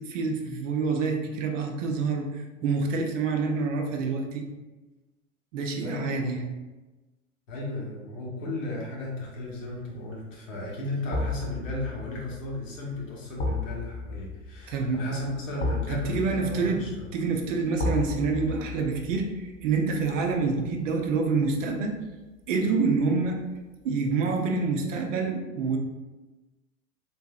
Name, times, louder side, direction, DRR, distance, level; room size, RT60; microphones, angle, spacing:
voice 1, 0.0-4.5 5.5-6.4 14.7-15.0 15.9-16.8 17.1-22.0 22.5-23.4 23.8-25.8, right 4 dB, 65° right, 3 dB, 0.7 m, -27 dB
voice 2, 5.8-6.4 7.5-17.1, left 2 dB, 65° left, -4 dB, 1.3 m, -35 dB
sound 1, 9.3-9.7 11.1-22.1 22.4-22.6, left 3 dB, 25° left, 0.7 m, -35 dB
3.8 x 2.8 x 2.3 m, 1.1 s
hypercardioid pair, 90°, 41 cm